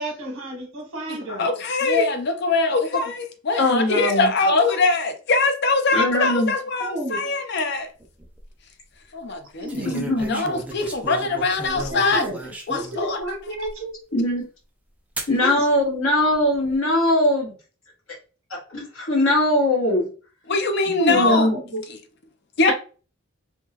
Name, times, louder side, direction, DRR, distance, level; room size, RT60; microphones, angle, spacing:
voice 1, 0.0-1.5 3.8-3.9 6.8-7.2 9.6-9.9 11.9-12.4 12.7-14.0 15.4-15.6 20.9-21.8, right 1 dB, 80° right, 1.4 m, -31 dB
voice 2, 1.1-7.9 9.1-9.8 10.3-12.3 12.7-13.2 20.5-21.5 22.6-22.7, left 3 dB, 55° left, 0.5 m, -22 dB
voice 3, 3.6-4.3 5.9-6.5 9.8-10.4 14.1-14.4 15.3-17.5 18.7-20.1 21.0-21.5, left 1 dB, 70° left, 1.3 m, -21 dB
sound 1, 8.0-8.4 9.7-13.0 13.6-13.7 15.2-15.4 16.3-16.8, right 1 dB, 5° right, 0.4 m, -35 dB
3.5 x 2.2 x 2.9 m
head